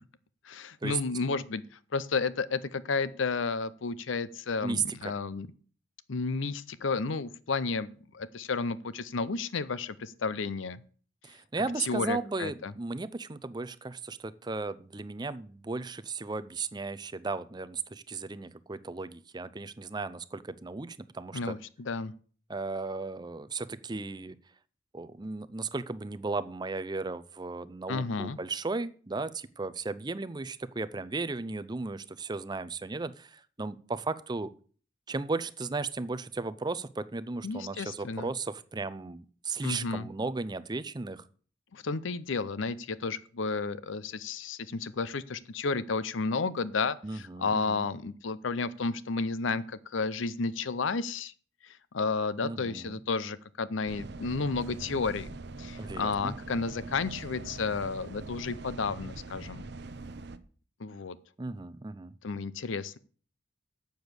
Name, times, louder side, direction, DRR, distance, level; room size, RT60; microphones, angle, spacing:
voice 1, 0.4-1.6 1.9-5.5 6.1-10.8 11.8-12.7 21.3-22.1 27.9-28.4 37.4-38.3 39.6-40.1 41.7-51.3 51.6-59.7 60.8-61.2 62.2-63.0, left 4 dB, 75° left, 17 dB, 0.6 m, -32 dB
voice 2, 4.6-5.1 11.2-21.5 22.5-24.3 24.9-34.5 35.1-41.2 47.0-47.9 52.4-53.0 55.8-56.3 61.4-62.1, right 3 dB, 20° right, 14 dB, 0.5 m, -35 dB
sound 1, 53.9-60.4, right 3 dB, 60° right, 0.7 m, -43 dB
7.9 x 6.9 x 8.0 m, 0.43 s
head